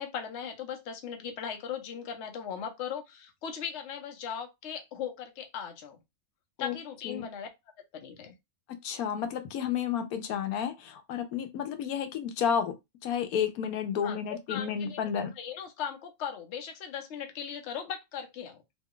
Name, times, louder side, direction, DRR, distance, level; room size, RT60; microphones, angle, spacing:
voice 1, 0.0-6.0 6.6-7.5 7.9-8.3 14.0-15.0 15.4-18.6, left 8 dB, 60° left, 0.9 m, -38 dB
voice 2, 8.8-12.8 13.0-15.3, left 8 dB, 90° left, 1.1 m, -31 dB
3.0 x 2.2 x 3.7 m
omnidirectional pair, 1.5 m